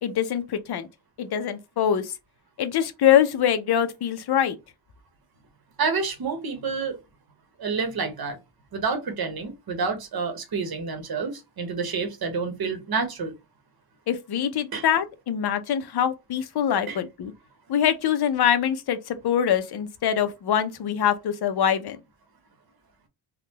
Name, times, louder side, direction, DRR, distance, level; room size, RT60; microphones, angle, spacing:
voice 1, 0.0-0.9 1.2-2.1 2.6-4.6 14.1-17.3 17.7-22.0, left 9 dB, 50° left, 0.6 m, -24 dB
voice 2, 5.8-7.0 7.6-8.4 8.7-13.3 14.7-14.8 16.9-17.0, right 4 dB, 45° right, 1.0 m, -28 dB
3.6 x 2.2 x 2.9 m
wide cardioid pair, 120°, 50 cm